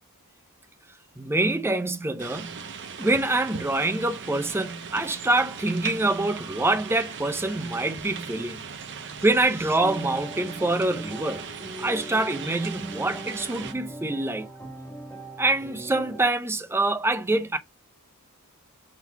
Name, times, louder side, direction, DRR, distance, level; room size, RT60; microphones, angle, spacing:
voice 1, 1.2-2.7 3.0-8.6 9.2-11.5 11.8-14.5 15.4-17.6, right 2 dB, 10° right, 0.5 m, -25 dB
sound 1, 2.2-13.7, right 6 dB, 55° right, 0.7 m, -39 dB
sound 2, 9.8-16.2, right 1 dB, 10° left, 1.5 m, -40 dB
3.7 x 3.0 x 4.6 m
head